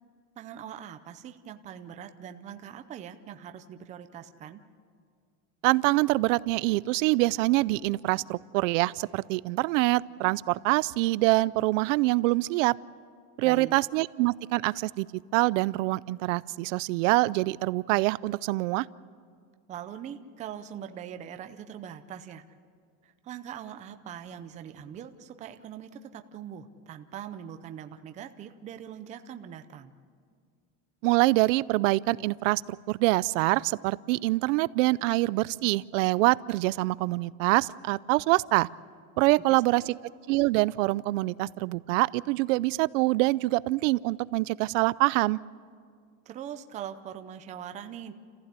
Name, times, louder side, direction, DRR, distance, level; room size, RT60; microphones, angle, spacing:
voice 1, 0.4-4.6 13.4-13.7 19.7-22.4 23.0-29.9 39.5-39.9 46.3-48.1, right 9 dB, 20° right, 8 dB, 0.6 m, -42 dB
voice 2, 5.6-12.7 13.4-15.1 15.3-18.9 31.0-32.6 32.9-38.7 39.2-39.9 40.3-45.4, right 20 dB, 80° right, 20 dB, 0.6 m, -25 dB
29.5 x 15.0 x 8.3 m, 2.1 s
cardioid pair, 175°, 37 cm